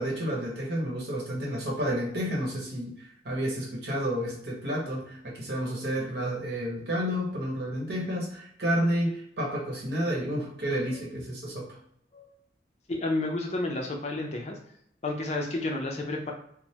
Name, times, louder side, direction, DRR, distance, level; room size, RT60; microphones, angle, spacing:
voice 1, 0.0-11.8, equal, 65° right, -3 dB, 0.9 m, -30 dB
voice 2, 12.9-14.6 15.0-16.3, left 2 dB, 40° left, 1 dB, 0.5 m, -31 dB
3.2 x 2.0 x 2.8 m, 0.68 s
head